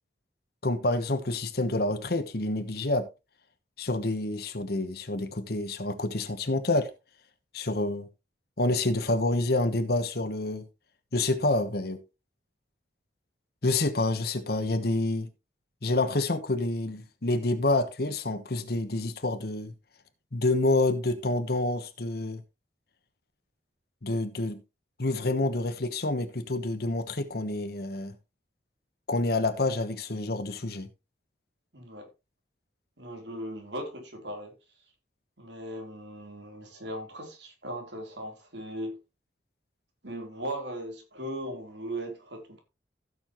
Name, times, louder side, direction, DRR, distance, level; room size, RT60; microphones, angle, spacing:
voice 1, 0.6-3.1 3.8-6.9 7.5-8.1 8.6-10.6 11.1-12.0 13.6-15.3 15.8-19.7 20.3-22.4 24.0-24.6 25.0-28.1 29.1-30.9, left 2 dB, 55° left, 1.2 m, -28 dB
voice 2, 31.7-32.1 33.0-34.5 35.4-39.0 40.0-42.6, right 1 dB, 70° right, 3.7 m, -38 dB
15.5 x 7.1 x 3.1 m
head